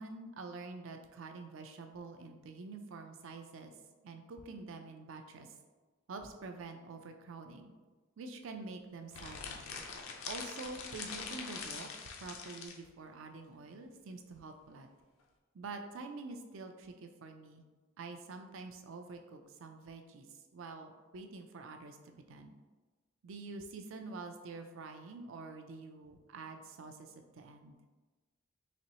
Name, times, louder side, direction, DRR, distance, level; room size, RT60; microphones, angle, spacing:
voice 1, 0.0-3.7 4.0-5.5 6.1-7.7 8.2-9.6 10.2-11.9 12.2-14.9 15.5-17.6 18.0-22.5 23.2-27.8, right 3 dB, 65° right, 5 dB, 0.4 m, -47 dB
sound 1, 9.1-12.8, left 5 dB, 75° left, 0.5 m, -44 dB
4.2 x 3.0 x 2.8 m, 1.3 s
head